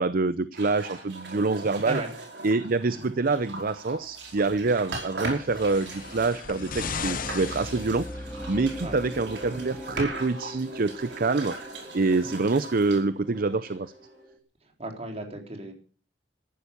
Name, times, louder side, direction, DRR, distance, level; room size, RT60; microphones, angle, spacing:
voice 1, 0.0-2.0 2.4-11.6 11.9-13.9, right 3 dB, 55° right, 0.6 m, -26 dB
sound 1, 0.5-14.1, right 2 dB, 70° right, 5.1 m, -40 dB
sound 2, 4.1-14.4, equal, 5° left, 2.8 m, -42 dB
sound 3, 5.3-8.6 9.6-9.7, left 6 dB, 50° left, 0.9 m, -37 dB
voice 2, 14.6-15.7, right 2 dB, 35° right, 3.9 m, -36 dB
14.0 x 11.5 x 6.8 m
head